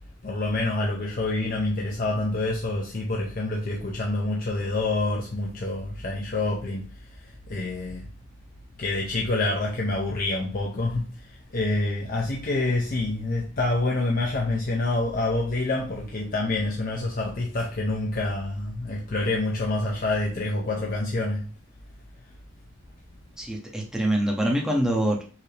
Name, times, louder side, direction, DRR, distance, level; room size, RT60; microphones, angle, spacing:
voice 1, 0.2-6.9 7.5-8.1 8.8-21.5, left 2 dB, 40° left, 0.6 m, -27 dB
voice 2, 23.4-25.2, right 1 dB, 5° right, 0.7 m, -25 dB
4.7 x 2.7 x 3.3 m
head